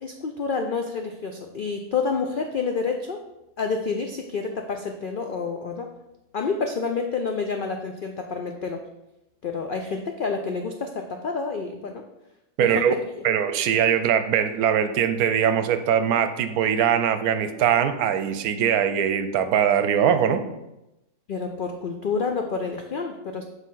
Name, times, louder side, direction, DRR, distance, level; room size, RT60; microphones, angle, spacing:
voice 1, 0.0-3.2 3.6-5.9 6.3-8.8 9.4-12.0 12.6-12.9 21.3-23.4, left 4 dB, 80° left, 4 dB, 0.4 m, -28 dB
voice 2, 12.6-12.9 13.2-20.4, right 8 dB, 80° right, 10 dB, 1.1 m, -21 dB
7.4 x 3.4 x 5.5 m, 0.92 s
omnidirectional pair, 1.6 m